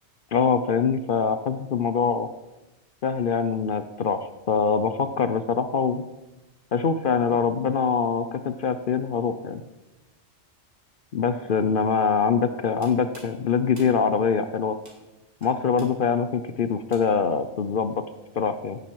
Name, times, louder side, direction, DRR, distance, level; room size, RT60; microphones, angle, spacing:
voice 1, 0.3-2.3 3.0-6.0 6.7-9.6 11.1-14.8 15.4-18.1 18.4-18.8, left 6 dB, 55° left, 10 dB, 0.7 m, -24 dB
sound 1, 12.8-17.4, right 2 dB, 85° right, 2.8 m, -52 dB
17.0 x 9.2 x 4.7 m, 1.0 s
omnidirectional pair, 1.2 m